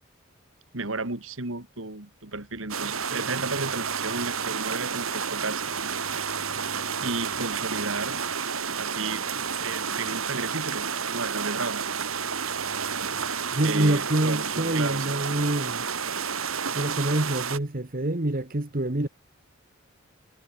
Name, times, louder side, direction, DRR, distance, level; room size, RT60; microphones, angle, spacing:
voice 1, 0.7-5.6 7.0-8.2 8.8-9.3 9.6-11.9 13.6-15.2, right 3 dB, 70° right, 2.9 m, -33 dB
sound 1, 2.7-17.6, right 6 dB, 85° right, 3.3 m, -30 dB
voice 2, 13.5-15.8 16.7-19.1, right 1 dB, 45° right, 1.5 m, -26 dB
head